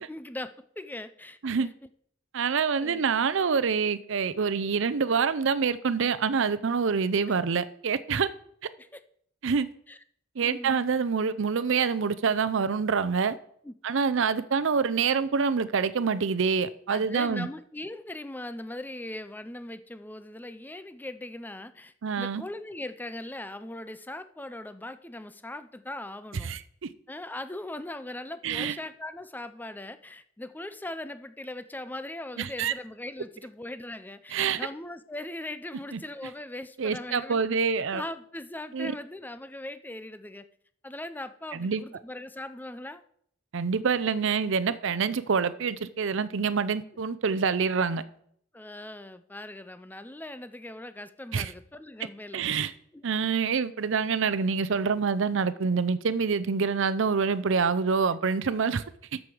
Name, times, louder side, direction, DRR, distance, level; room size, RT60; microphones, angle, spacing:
voice 1, 0.0-1.7 2.8-3.0 8.8-9.0 9.9-10.0 10.4-10.8 13.6-13.7 16.9-26.5 27.1-37.4 37.9-40.5 40.8-43.0 48.5-52.4 52.9-53.0, left 1 dB, 10° left, 0.5 m, -40 dB
voice 2, 2.3-8.3 9.4-9.7 10.4-13.3 13.8-17.5 22.0-22.4 26.4-26.9 28.4-28.8 32.4-32.7 34.3-34.6 35.9-36.0 36.8-38.0 38.7-38.9 41.5-41.8 43.5-48.0 51.3-51.5 52.3-52.7 53.0-58.8, right 5 dB, 70° right, 0.6 m, -26 dB
13.0 x 6.2 x 4.9 m
head